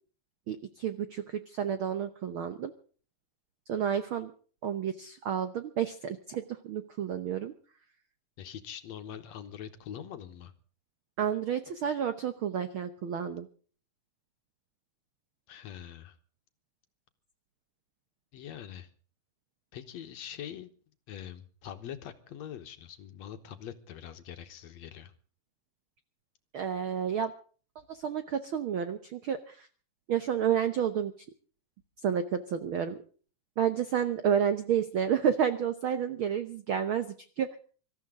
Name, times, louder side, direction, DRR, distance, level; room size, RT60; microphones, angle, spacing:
voice 1, 0.5-2.7 3.7-4.3 4.6-7.5 11.2-13.5 26.5-27.3 27.9-29.7 30.1-31.1 32.0-33.0 33.6-37.6, right 8 dB, 75° right, 10 dB, 1.2 m, -30 dB
voice 2, 8.4-10.5 15.5-16.2 18.3-18.9 19.7-20.7 21.1-25.1, left 9 dB, 65° left, 9 dB, 2.2 m, -43 dB
25.5 x 14.0 x 3.7 m, 0.41 s
omnidirectional pair, 3.7 m